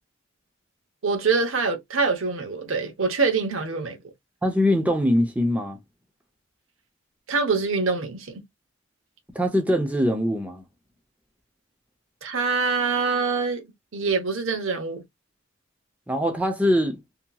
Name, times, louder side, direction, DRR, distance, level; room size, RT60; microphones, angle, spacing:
voice 1, 1.0-4.0 7.3-8.4 12.2-15.0, right 4 dB, 70° right, 0.8 m, -25 dB
voice 2, 4.4-5.8 9.3-10.6 16.1-17.0, equal, 5° right, 0.6 m, -22 dB
2.8 x 2.8 x 2.2 m
head